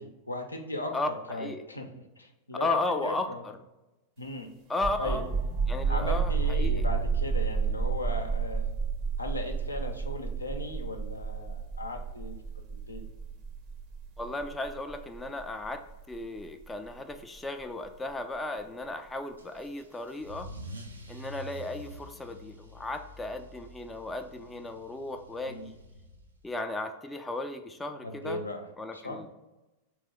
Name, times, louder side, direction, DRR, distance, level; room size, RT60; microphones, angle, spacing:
voice 1, 0.0-1.9 2.2-2.8 3.0-3.4 4.2-4.5 5.0-5.3 5.9-8.7 9.2-12.4 12.7-13.0 25.5-25.7 28.0-28.7 28.9-29.2, left 1 dB, 80° left, 3 dB, 0.5 m, -37 dB
voice 2, 2.6-3.5 4.7-5.2 5.7-6.8 14.2-20.5 21.1-25.7 26.4-28.4 28.8-29.3, left 2 dB, 10° left, 6 dB, 0.3 m, -35 dB
sound 1, 4.7-18.1, right 5 dB, 40° right, 0.7 m, -31 dB
Car / Engine starting / Accelerating revving vroom, 19.4-26.5, equal, 75° right, 0.5 m, -47 dB
3.6 x 3.0 x 3.4 m, 1.0 s
figure-of-eight pair, 90°, 0 cm